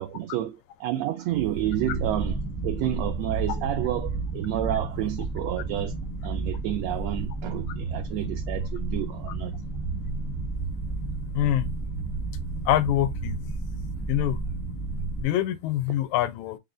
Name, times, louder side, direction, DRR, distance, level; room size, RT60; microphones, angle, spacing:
voice 1, 0.0-2.4 2.6-5.9 6.2-9.6, right 13 dB, 80° right, 1.7 m, -30 dB
sound 1, 1.3-15.2, right 3 dB, 20° left, 0.6 m, -31 dB
voice 2, 11.3-11.7 12.7-13.4 14.1-14.4 15.2-16.6, left 13 dB, 80° left, 1.8 m, -25 dB
4.8 x 2.2 x 3.7 m
omnidirectional pair, 3.4 m